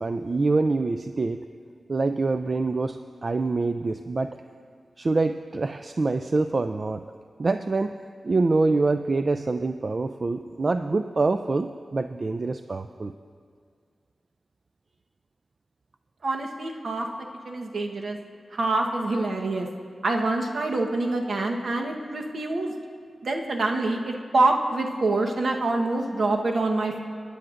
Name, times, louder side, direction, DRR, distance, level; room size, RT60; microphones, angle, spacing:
voice 1, 0.0-1.4 1.9-4.4 5.0-7.0 7.4-7.9 8.2-13.1, right 3 dB, 50° right, 8 dB, 0.3 m, -25 dB
voice 2, 16.2-17.1 17.4-18.2 18.5-19.7 20.0-22.7 23.2-27.0, right 2 dB, 70° right, 2 dB, 1.1 m, -26 dB
20.5 x 9.8 x 2.5 m, 2.1 s
cardioid pair, 55°, 0 cm